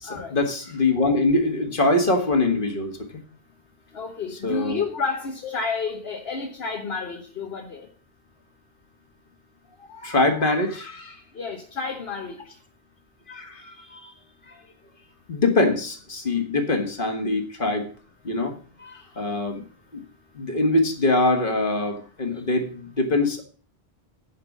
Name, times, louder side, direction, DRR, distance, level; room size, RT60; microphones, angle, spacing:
voice 1, 0.0-3.1 4.3-4.8 9.9-11.2 13.3-14.1 14.5-14.6 15.3-17.9 18.2-18.5 18.8-19.6 19.9-20.0 20.3-23.4, left 2 dB, 55° left, 4 dB, 2.0 m, -23 dB
voice 2, 3.9-7.8 11.3-12.4, left 4 dB, 70° left, 2 dB, 1.3 m, -30 dB
10.5 x 5.4 x 7.3 m, 0.43 s
omnidirectional pair, 1.1 m